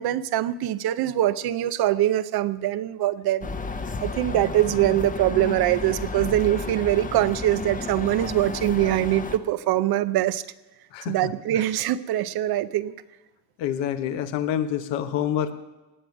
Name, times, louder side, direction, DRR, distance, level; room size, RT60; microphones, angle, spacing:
voice 1, 0.0-3.5 4.0-10.4 11.1-12.9, right 13 dB, 55° right, 14 dB, 0.7 m, -23 dB
sound 1, 3.4-9.4, left 3 dB, 15° left, 0.9 m, -32 dB
voice 2, 10.9-11.3 13.6-15.5, left 10 dB, 70° left, 8 dB, 1.4 m, -27 dB
18.0 x 7.8 x 6.1 m, 1.1 s
supercardioid pair, 100°, 46 cm